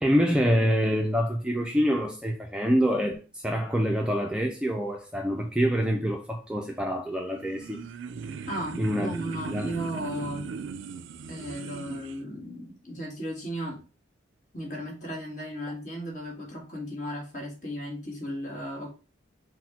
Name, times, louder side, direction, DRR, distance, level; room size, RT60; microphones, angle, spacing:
voice 1, 0.0-7.8 8.8-9.1 9.5-9.7, equal, 5° right, 0.3 m, -26 dB
sound 1, 7.3-12.2, right 6 dB, 80° right, 0.4 m, -38 dB
voice 2, 8.5-10.5 11.3-13.8 14.5-18.9, equal, 40° left, 1.5 m, -35 dB
4.3 x 2.1 x 4.1 m
head